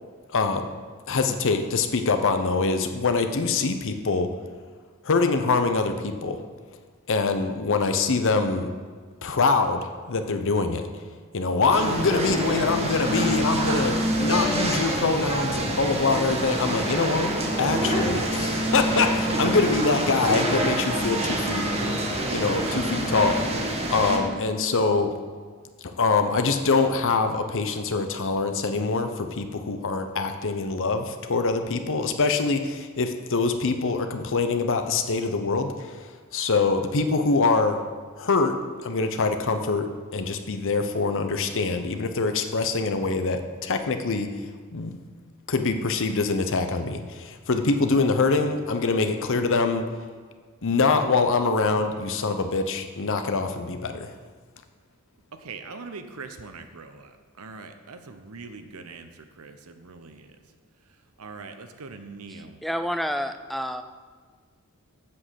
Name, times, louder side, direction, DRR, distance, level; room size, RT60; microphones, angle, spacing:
voice 1, 0.3-0.7 1.1-4.3 5.0-6.4 7.1-8.7 9.2-10.9 11.3-17.3 17.6-21.7 22.3-23.4 23.9-25.1 25.8-36.0 36.3-37.9 38.2-44.3 44.7-45.0 45.5-49.9 50.6-54.1, left 4 dB, 60° left, 7 dB, 0.8 m, -24 dB
sound 1, 11.7-24.2, right 1 dB, 30° right, 1.3 m, -26 dB
voice 2, 55.4-60.3 61.2-62.6, right 4 dB, 75° right, 8 dB, 0.8 m, -42 dB
voice 3, 62.3-63.8, equal, ahead, 9 dB, 0.4 m, -29 dB
7.7 x 6.4 x 7.6 m, 1.6 s
head